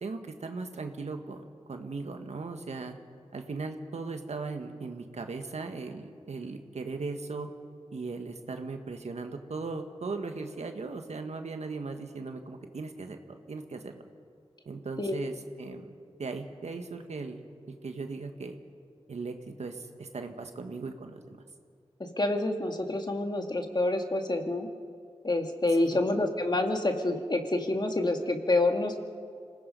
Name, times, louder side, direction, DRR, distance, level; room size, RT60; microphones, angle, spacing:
voice 1, 0.0-3.0 3.3-7.5 7.9-13.9 14.6-15.9 16.2-17.4 17.7-18.6 19.1-21.4 25.7-26.0, right 4 dB, 80° right, 6 dB, 1.6 m, -38 dB
voice 2, 22.2-24.7 25.2-29.0, left 2 dB, 40° left, 4 dB, 2.0 m, -27 dB
26.5 x 18.5 x 5.4 m, 2.2 s
cardioid pair, 55°, 11 cm